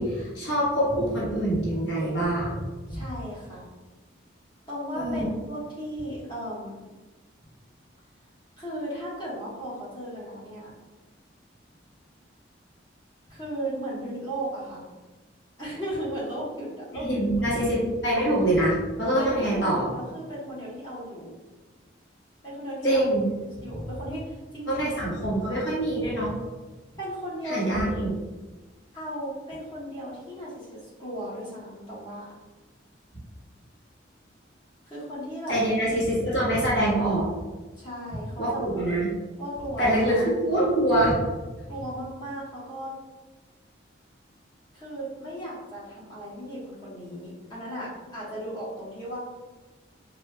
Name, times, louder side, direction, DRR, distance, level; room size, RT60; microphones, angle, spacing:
voice 1, 0.0-2.6 2.9-3.0 4.9-5.3 16.9-19.9 22.8-23.3 24.7-26.3 27.4-28.1 35.5-37.3 38.4-39.1 39.8-41.2, right 1 dB, 65° left, -7 dB, 1.1 m, -24 dB
voice 2, 2.9-3.7 4.7-6.8 8.6-10.7 13.3-14.8 15.6-17.1 17.6-17.7 19.2-21.4 22.4-23.1 23.6-25.0 27.0-28.0 28.9-32.3 34.9-35.6 37.8-38.7 39.4-40.3 41.7-42.9 44.7-49.2, right 1 dB, 25° left, -9 dB, 1.2 m, -36 dB
4.9 x 2.4 x 2.2 m, 1.2 s
head